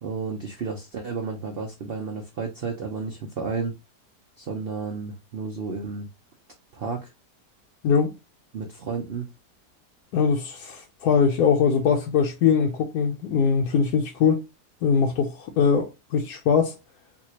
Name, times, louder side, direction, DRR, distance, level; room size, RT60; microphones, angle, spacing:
voice 1, 0.0-3.7 4.4-6.1 6.7-7.1 8.5-9.3, right 4 dB, 75° right, 0.5 m, -32 dB
voice 2, 7.8-8.1 10.1-14.4 14.8-16.8, left 6 dB, 70° left, 1.0 m, -22 dB
4.0 x 2.3 x 2.8 m
omnidirectional pair, 1.8 m